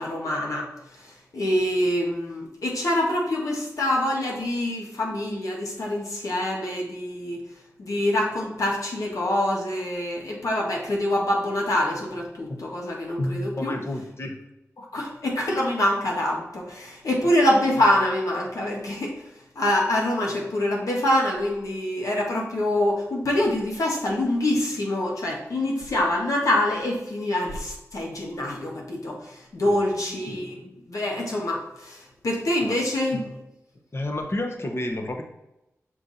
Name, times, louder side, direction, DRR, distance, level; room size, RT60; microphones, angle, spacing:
voice 1, 0.0-7.4 7.8-13.7 14.8-19.2 19.5-33.2, left 1 dB, 75° left, -2 dB, 1.5 m, -25 dB
voice 2, 13.6-14.4 29.6-30.0 32.6-32.8 33.9-35.2, left 1 dB, 45° left, 3 dB, 1.2 m, -31 dB
6.0 x 4.5 x 4.1 m, 0.91 s
cardioid pair, 40°, 6 cm